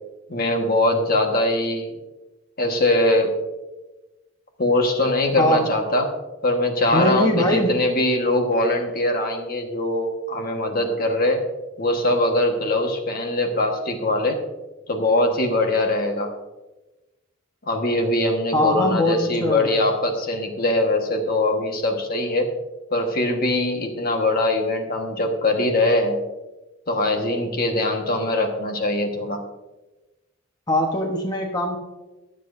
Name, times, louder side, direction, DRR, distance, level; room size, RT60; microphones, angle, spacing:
voice 1, 0.3-1.9 2.6-3.3 4.6-6.1 6.4-11.4 11.8-14.4 14.9-16.3 17.7-22.5 22.9-26.2 26.9-29.4, left 1 dB, 45° left, 3 dB, 1.4 m, -22 dB
voice 2, 5.4-5.8 6.9-7.8 18.5-19.8 30.7-31.8, left 1 dB, 20° left, 1 dB, 1.1 m, -21 dB
22.5 x 7.6 x 2.6 m, 1.1 s
head